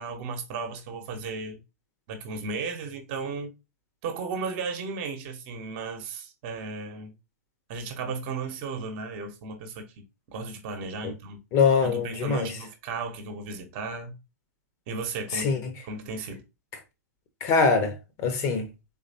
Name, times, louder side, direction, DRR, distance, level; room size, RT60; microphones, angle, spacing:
voice 1, 0.0-1.6 2.1-3.5 4.0-7.1 7.7-9.8 10.3-11.4 11.8-14.2 14.9-16.4, right 4 dB, 40° right, 1.0 m, -35 dB
voice 2, 11.5-12.5 15.3-15.6 17.4-18.7, left 5 dB, 35° left, 0.9 m, -23 dB
4.0 x 3.2 x 2.7 m
figure-of-eight pair, 105°, 9 cm